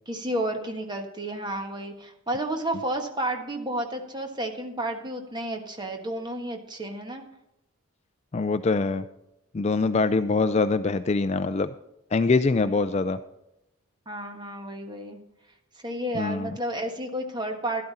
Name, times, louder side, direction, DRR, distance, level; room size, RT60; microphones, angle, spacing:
voice 1, 0.1-7.2 12.6-12.8 14.0-15.2 15.8-17.8, right 1 dB, 20° right, 4 dB, 1.5 m, -31 dB
voice 2, 8.3-9.1 9.5-11.7 12.1-13.2 16.1-16.5, left 3 dB, 30° left, 12 dB, 0.3 m, -24 dB
12.5 x 12.0 x 4.2 m, 0.86 s
head